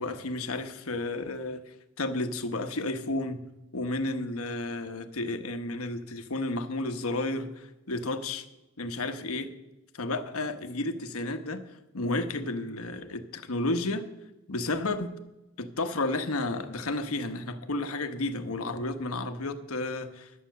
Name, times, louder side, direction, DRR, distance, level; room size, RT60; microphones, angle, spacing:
voice 1, 0.0-3.4 3.7-8.4 8.8-9.5 9.9-11.6 11.9-14.0 14.5-15.1 15.6-20.4, left 2 dB, 85° left, 7 dB, 1.1 m, -32 dB
11.5 x 8.7 x 6.5 m, 0.98 s
head